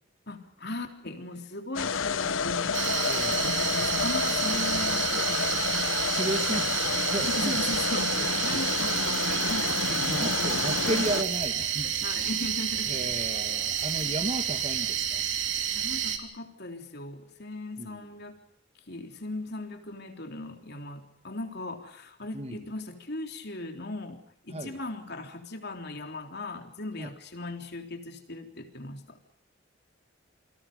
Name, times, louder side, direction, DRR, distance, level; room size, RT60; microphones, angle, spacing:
voice 1, 0.3-5.6 7.2-10.2 12.0-13.1 14.0-14.1 15.7-18.4 18.9-29.2, left 2 dB, 55° left, 5 dB, 3.6 m, -38 dB
sound 1, 1.8-11.2, left 5 dB, 90° left, 1.0 m, -29 dB
sound 2, 2.7-16.2, right 9 dB, 65° right, 3.2 m, -30 dB
voice 2, 3.0-3.5 6.1-7.6 8.2-8.7 10.0-11.9 12.9-15.2 17.8-18.1 22.3-22.6 24.5-24.8 27.0-27.1, right 1 dB, 35° right, 8 dB, 2.1 m, -34 dB
29.0 x 25.0 x 5.3 m, 0.72 s
head